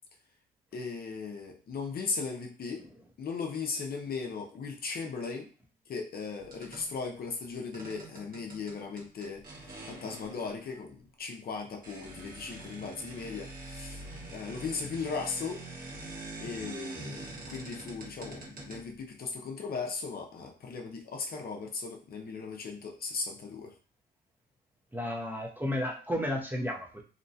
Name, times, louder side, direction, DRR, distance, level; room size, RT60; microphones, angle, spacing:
voice 1, 0.7-2.8 3.2-5.5 5.9-9.4 9.9-14.0 14.3-15.6 16.4-23.7, left 4 dB, 50° left, 2 dB, 0.6 m, -37 dB
sound 1, 6.4-6.9 7.7-10.8 11.5-11.6 11.8-19.2, right 2 dB, 45° right, 1.1 m, -45 dB
voice 2, 24.9-27.0, left 1 dB, 10° right, -1 dB, 0.6 m, -32 dB
2.8 x 2.1 x 2.7 m, 0.39 s
cardioid pair, 90°, 20 cm